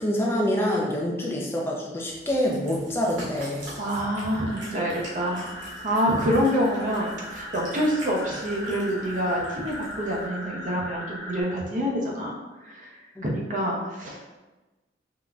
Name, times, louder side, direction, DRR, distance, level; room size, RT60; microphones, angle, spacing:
voice 1, 0.0-3.7 13.2-13.3, left 1 dB, 15° left, -2 dB, 0.4 m, -26 dB
Cat, 2.1-10.2, right 1 dB, 75° right, 1.0 m, -44 dB
voice 2, 3.8-5.5 5.8-13.0 13.2-14.4, equal, 40° right, -3 dB, 0.6 m, -27 dB
sound 1, 4.3-11.4, equal, 70° left, 1.3 m, -39 dB
3.7 x 2.1 x 2.3 m, 1.1 s
head